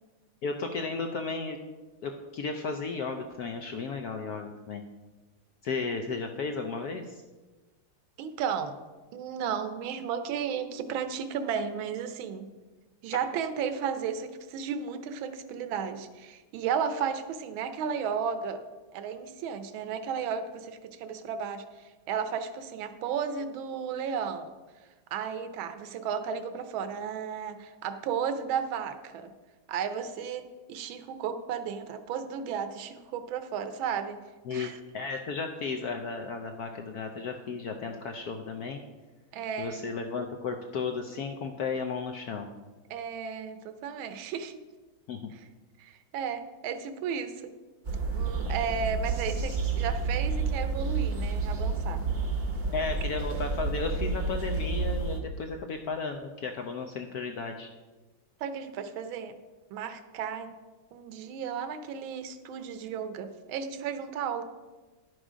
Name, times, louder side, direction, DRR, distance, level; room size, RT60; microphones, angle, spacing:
voice 1, 0.4-1.6 2.0-4.8 5.6-7.2 34.5-38.8 39.6-42.5 45.1-45.3 52.7-57.7, left 4 dB, 80° left, 4 dB, 0.8 m, -34 dB
voice 2, 8.2-8.7 9.1-12.4 13.0-18.6 18.9-21.6 22.1-24.5 25.1-29.3 29.7-34.2 34.5-34.8 39.3-39.8 42.9-44.6 45.3-45.4 45.8-47.5 48.1-52.0 58.4-59.4 59.7-60.5 60.9-64.4, right 7 dB, 70° right, 10 dB, 1.5 m, -34 dB
sound 1, 47.9-55.2, right 4 dB, 45° right, 0.6 m, -30 dB
11.0 x 6.3 x 5.0 m, 1.3 s
omnidirectional pair, 2.4 m